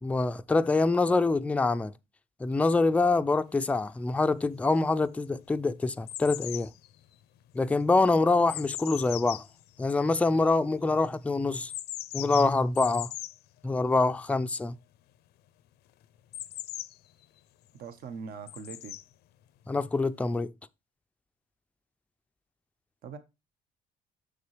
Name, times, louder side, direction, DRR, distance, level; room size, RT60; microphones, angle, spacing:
voice 1, 0.0-1.9 2.4-6.7 7.5-9.5 9.8-11.7 12.1-13.1 13.6-14.8 19.7-20.5, left 3 dB, 10° left, 0.4 m, -25 dB
sound 1, 3.8-3.9 4.5-5.1 5.4-10.6 11.6-13.4 16.3-17.4 18.5-19.0 20.0-20.1, left 15 dB, 75° left, 0.5 m, -39 dB
voice 2, 17.7-18.9 23.0-23.2, right 5 dB, 65° right, 1.1 m, -42 dB
6.8 x 6.6 x 3.2 m
cardioid pair, 110°, 17 cm